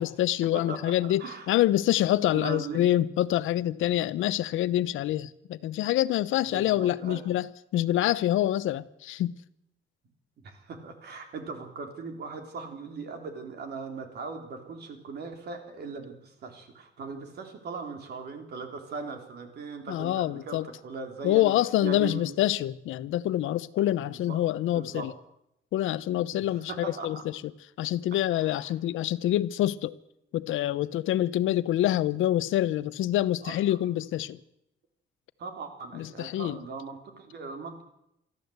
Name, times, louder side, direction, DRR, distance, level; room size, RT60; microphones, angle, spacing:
voice 1, 0.0-9.3 19.9-20.7 21.2-25.1 25.7-27.2 27.8-29.9 30.3-34.4 35.9-36.6, left 13 dB, 85° left, 0.9 m, -26 dB
voice 2, 0.5-1.5 2.3-2.8 6.4-7.2 10.4-21.5 21.8-22.3 24.0-24.5 24.7-25.1 26.3-27.2 28.3-28.7 33.4-33.8 35.4-37.8, right 4 dB, 55° right, 3.8 m, -39 dB
23.0 x 14.0 x 8.1 m
cardioid pair, 160°, 20 cm